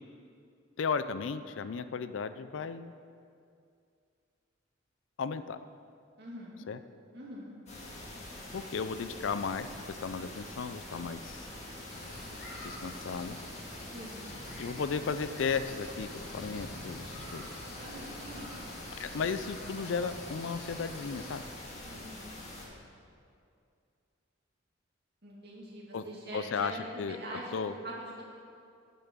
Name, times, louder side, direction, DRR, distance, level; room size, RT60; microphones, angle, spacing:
voice 1, 0.8-2.9 5.2-5.6 6.7-6.8 8.5-11.5 12.6-13.4 14.6-16.1 16.3-17.5 19.0-21.4 25.9-26.0 26.3-26.7 27.0-27.2 27.5-27.7, left 5 dB, 70° left, 12 dB, 0.4 m, -35 dB
voice 2, 6.2-6.7 7.1-7.5 13.9-14.3 17.7-18.5 21.8-22.7 25.2-26.8 27.1-28.2, right 1 dB, 55° right, -4 dB, 2.4 m, -44 dB
sound 1, 7.7-22.7, left 1 dB, 35° left, 1.8 m, -45 dB
sound 2, 11.9-21.4, left 1 dB, 50° left, 2.2 m, -47 dB
10.5 x 6.8 x 6.1 m, 2.4 s
head